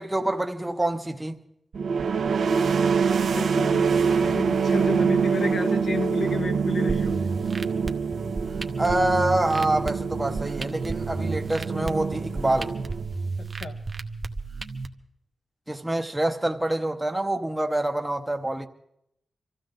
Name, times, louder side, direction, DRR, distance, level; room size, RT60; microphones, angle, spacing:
voice 1, 0.0-1.4 8.8-12.7 15.7-18.7, right 1 dB, 10° right, 0.8 m, -26 dB
sound 1, 1.7-13.3, right 5 dB, 85° right, 1.1 m, -25 dB
voice 2, 3.2-7.2 13.4-13.8, left 3 dB, 70° left, 1.5 m, -32 dB
sound 2, 6.9-14.9, right 3 dB, 35° right, 0.8 m, -33 dB
24.5 x 14.5 x 3.9 m
wide cardioid pair, 120°, 0 cm